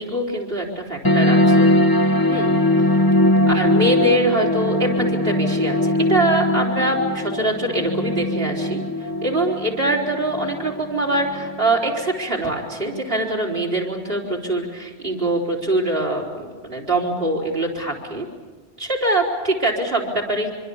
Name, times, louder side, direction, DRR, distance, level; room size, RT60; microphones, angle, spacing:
voice 1, 0.0-1.7 2.0-2.5 3.5-8.8 9.2-18.3 18.8-20.5, right 1 dB, 60° right, 0 dB, 4.2 m, -23 dB
sound 1, 1.0-12.0, left 1 dB, 20° left, 1.1 m, -20 dB
25.0 x 25.0 x 7.1 m, 1.4 s
omnidirectional pair, 1.1 m